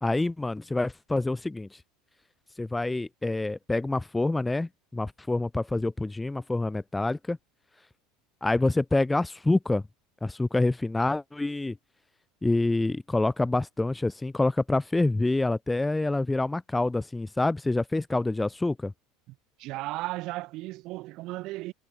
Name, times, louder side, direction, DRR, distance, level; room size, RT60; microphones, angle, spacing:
voice 1, 0.0-1.7 2.6-7.4 8.4-9.8 10.2-11.8 12.4-18.9, left 2 dB, 10° left, 0.9 m, -27 dB
voice 2, 19.6-21.7, right 19 dB, 60° right, 5.1 m, -35 dB
hypercardioid pair, 90°, 0 cm